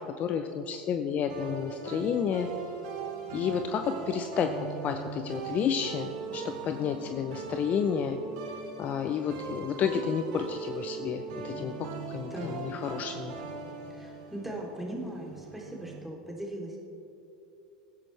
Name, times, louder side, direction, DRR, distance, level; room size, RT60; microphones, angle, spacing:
voice 1, 0.0-2.5 3.3-4.5 4.8-8.2 8.8-13.3, left 7 dB, 40° left, 7 dB, 0.7 m, -31 dB
sound 1, 1.3-16.0, right 5 dB, 70° right, 2.3 m, -40 dB
voice 2, 12.3-12.6 13.9-16.8, right 1 dB, 5° right, -2 dB, 3.1 m, -39 dB
18.5 x 10.5 x 3.3 m, 2.9 s
hypercardioid pair, 85°, 4 cm